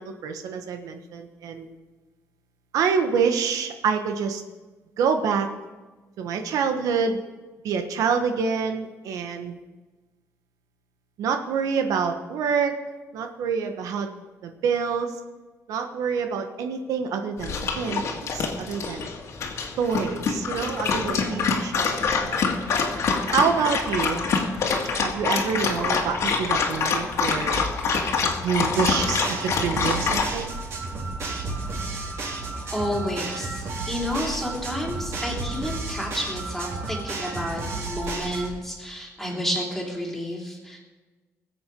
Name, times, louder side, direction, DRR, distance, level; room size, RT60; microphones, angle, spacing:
voice 1, 0.0-1.7 2.7-4.4 5.0-5.5 6.2-7.2 7.6-9.5 11.2-12.7 13.1-14.1 14.4-15.2 15.7-19.1 19.8-22.4 23.3-24.2 25.0-27.6 28.4-30.6, right 6 dB, 80° right, 6 dB, 1.2 m, -27 dB
Dog, 17.4-30.3, left 5 dB, 55° left, 2.0 m, -25 dB
sound 1, 28.6-38.5, right 3 dB, 50° right, 3.6 m, -32 dB
voice 2, 32.7-40.8, equal, 5° left, -2 dB, 3.3 m, -30 dB
20.5 x 7.9 x 5.3 m, 1.2 s
cardioid pair, 155°, 6 cm